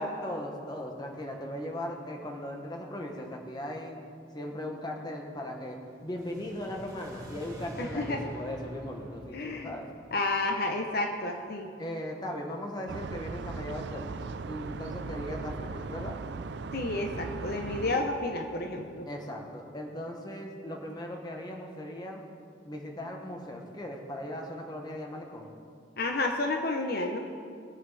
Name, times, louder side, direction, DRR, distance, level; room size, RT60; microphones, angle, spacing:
voice 1, 0.0-4.0 4.3-9.9 11.8-14.2 14.4-16.2 17.9-18.1 19.1-22.2 22.6-25.5, left 1 dB, 20° left, 1 dB, 1.4 m, -38 dB
sound 1, 5.9-11.1, right 1 dB, 20° right, 1.9 m, -46 dB
voice 2, 7.8-8.2 9.3-9.8 10.1-11.7 16.7-19.1 26.0-27.2, left 2 dB, 55° left, 3 dB, 0.8 m, -31 dB
sound 2, 12.9-18.0, right 4 dB, 65° right, 0.5 m, -38 dB
21.0 x 7.7 x 4.1 m, 2.3 s
head